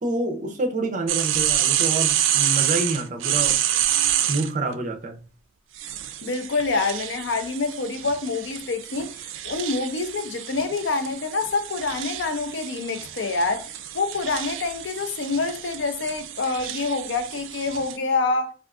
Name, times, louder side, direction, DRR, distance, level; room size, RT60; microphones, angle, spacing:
voice 1, 0.0-3.6 4.3-5.2, right 2 dB, 40° right, 0.6 m, -27 dB
sound 1, 1.1-4.5 5.8-18.0, right 11 dB, 90° right, 0.3 m, -28 dB
voice 2, 6.2-13.7 13.9-18.5, left 3 dB, 65° left, 0.5 m, -26 dB
3.5 x 2.4 x 2.4 m
head